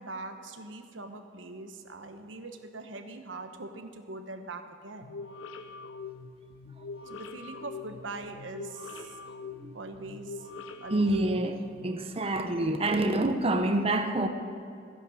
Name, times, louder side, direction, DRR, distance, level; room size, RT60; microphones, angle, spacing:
voice 1, 0.0-5.2 7.0-9.2 9.7-10.5 10.8-11.5, right 2 dB, 85° right, 6 dB, 1.1 m, -42 dB
sound 1, 5.0-11.9, left 4 dB, 90° left, 0.8 m, -43 dB
voice 2, 10.9-11.6 11.8-14.3, right 1 dB, 30° right, 6 dB, 0.8 m, -27 dB
14.5 x 10.5 x 6.4 m, 2.4 s
head